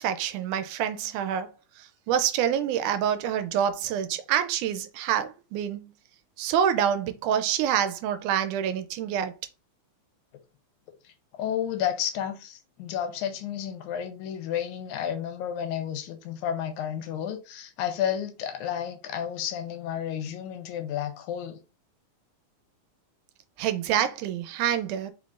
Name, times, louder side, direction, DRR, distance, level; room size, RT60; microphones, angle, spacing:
voice 1, 0.0-5.9 6.4-9.4 23.6-25.1, right 9 dB, 85° right, 2.0 m, -27 dB
voice 2, 11.3-21.6, left 9 dB, 85° left, 2.0 m, -31 dB
4.6 x 3.8 x 2.4 m
omnidirectional pair, 3.5 m